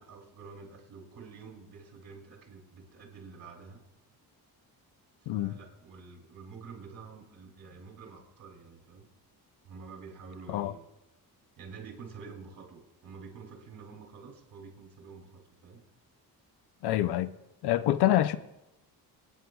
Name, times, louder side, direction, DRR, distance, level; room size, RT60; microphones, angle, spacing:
voice 1, 0.0-3.8 5.2-9.1 9.6-10.9 11.6-15.8, right 5 dB, 55° right, 2.9 m, -48 dB
voice 2, 16.8-17.3 17.6-18.4, left 13 dB, 80° left, 0.6 m, -26 dB
26.5 x 9.4 x 2.3 m
cardioid pair, 140°, 39 cm